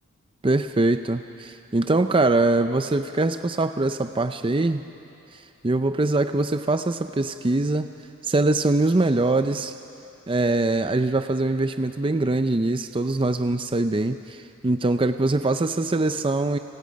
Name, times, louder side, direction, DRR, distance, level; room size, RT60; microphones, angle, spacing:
voice 1, 0.4-4.8 5.3-7.9 8.2-9.7 10.3-16.6, right 2 dB, 25° right, 9 dB, 0.5 m, -23 dB
30.0 x 27.5 x 5.3 m, 2.8 s
head